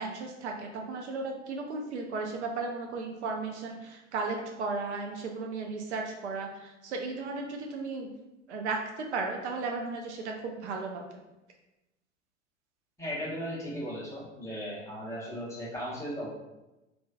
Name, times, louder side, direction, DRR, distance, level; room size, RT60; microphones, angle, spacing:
voice 1, 0.0-8.1 8.5-11.0, right 3 dB, 65° right, 2 dB, 0.5 m, -35 dB
voice 2, 13.0-16.3, equal, 10° left, -7 dB, 0.8 m, -36 dB
2.4 x 2.2 x 2.4 m, 0.97 s
figure-of-eight pair, 85°, 37 cm